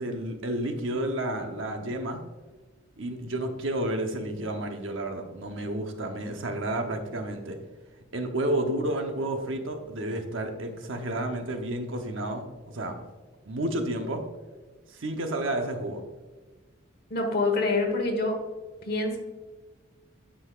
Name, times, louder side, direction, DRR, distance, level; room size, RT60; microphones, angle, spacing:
voice 1, 0.0-2.2 3.0-7.6 8.1-12.9 13.5-14.2 14.9-16.0, right 1 dB, 75° right, 5 dB, 0.9 m, -31 dB
voice 2, 17.1-18.4 18.8-19.2, left 3 dB, 50° left, 3 dB, 1.3 m, -26 dB
9.7 x 5.6 x 2.4 m, 1.3 s
head